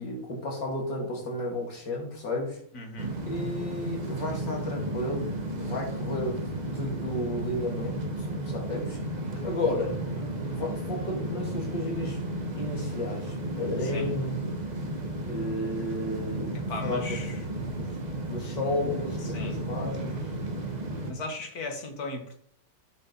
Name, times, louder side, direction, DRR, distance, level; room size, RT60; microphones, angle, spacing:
voice 1, 0.0-2.6 3.2-6.5 6.7-9.0 9.4-12.2 12.6-14.4 15.2-16.5 16.8-17.2 17.8-17.9 18.3-20.2, left 1 dB, 75° left, 0 dB, 3.3 m, -33 dB
voice 2, 2.7-3.2 13.8-14.1 16.5-17.4 19.3-19.6 21.1-22.3, left 3 dB, 55° left, 4 dB, 2.1 m, -37 dB
sound 1, 3.0-21.1, right 1 dB, 25° right, 1.2 m, -33 dB
9.9 x 5.3 x 5.4 m, 0.64 s
omnidirectional pair, 1.9 m